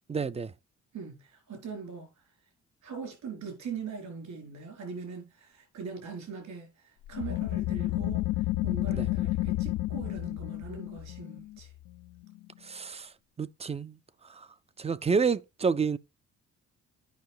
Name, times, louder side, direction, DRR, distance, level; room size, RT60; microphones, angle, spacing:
voice 1, 0.1-0.5 8.9-9.1 12.6-13.1 13.4-14.0 14.3-14.5 14.8-16.0, right 5 dB, 20° right, 0.4 m, -29 dB
voice 2, 0.9-2.1 2.8-11.7, right 5 dB, 70° right, 4.6 m, -41 dB
sound 1, 7.1-12.4, left 17 dB, 85° left, 0.5 m, -31 dB
9.4 x 5.4 x 4.6 m
cardioid pair, 90°, 30 cm